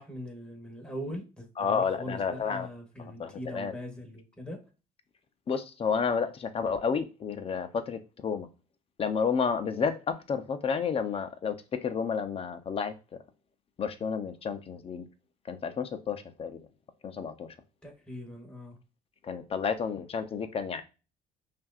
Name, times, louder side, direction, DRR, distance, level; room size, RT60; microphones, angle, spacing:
voice 1, 0.0-4.6 17.8-18.8, equal, 5° left, 1.3 m, -41 dB
voice 2, 1.6-2.7 3.0-3.7 5.5-8.5 9.0-11.6 11.8-12.9 13.8-15.0 15.5-16.6 17.0-17.5 19.2-20.8, left 6 dB, 35° left, 0.6 m, -31 dB
5.6 x 2.6 x 2.4 m
cardioid pair, 110°, 17 cm